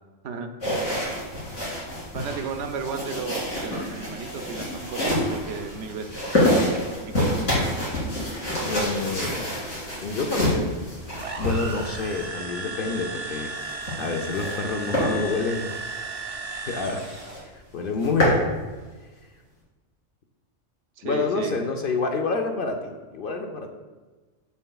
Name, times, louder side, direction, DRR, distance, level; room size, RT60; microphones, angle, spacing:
voice 1, 0.2-1.1 2.1-6.8 7.0-7.4 21.0-21.5, right 5 dB, 75° right, 6 dB, 0.9 m, -34 dB
sound 1, 0.6-12.3 13.6-14.6 14.9-15.1 15.6-15.8 16.2-16.3 16.5-16.6 17.0-17.4 17.8-18.4, left 1 dB, 75° left, 2.7 m, -27 dB
voice 2, 8.6-9.4 10.0-10.8 11.4-15.7 16.7-17.1 17.5-18.5 21.0-23.7, left 3 dB, 55° left, 3 dB, 0.7 m, -28 dB
sound 2, 11.1-17.5, right 3 dB, 45° right, 0.5 m, -35 dB
7.0 x 6.7 x 2.3 m, 1.3 s
omnidirectional pair, 1.3 m